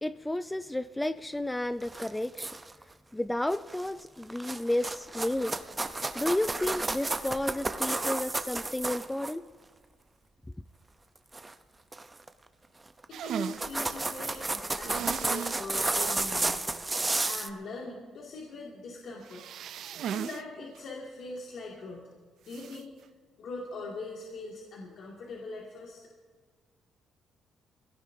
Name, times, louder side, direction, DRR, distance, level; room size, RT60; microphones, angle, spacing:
voice 1, 0.0-2.5 3.1-5.5 6.1-9.4, left 1 dB, 10° left, 0.4 m, -32 dB
sound 1, 1.8-2.8 3.5-3.9 4.2-9.3 11.3-11.5 11.9-12.3 13.0-13.1 13.4-17.5, right 2 dB, 20° right, 0.7 m, -32 dB
voice 2, 13.1-16.7 17.3-19.4 20.0-22.0 22.5-22.9 23.4-26.0, left 2 dB, 70° left, 2.3 m, -41 dB
sound 2, 13.1-13.6 14.8-15.6 16.0-16.1 16.5-16.6 19.2-20.4 20.7-20.8 22.5-22.8, right 9 dB, 70° right, 0.4 m, -37 dB
23.0 x 17.0 x 2.7 m
cardioid pair, 90°, 0 cm